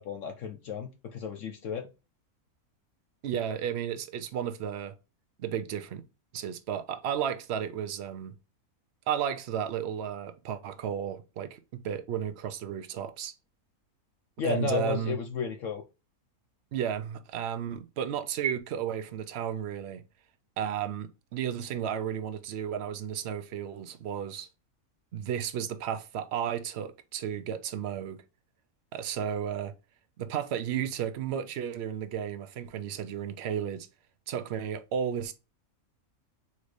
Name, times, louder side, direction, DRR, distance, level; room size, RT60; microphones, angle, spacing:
voice 1, 0.0-1.9 14.4-15.8, left 6 dB, 70° left, 0.9 m, -33 dB
voice 2, 3.2-4.9 5.4-6.0 6.3-8.3 9.1-13.3 14.4-15.2 16.7-20.0 20.6-24.5 25.1-28.2 28.9-29.7 30.2-33.9 34.3-35.3, right 9 dB, 60° right, 0.7 m, -33 dB
4.3 x 2.6 x 4.7 m
omnidirectional pair, 1.5 m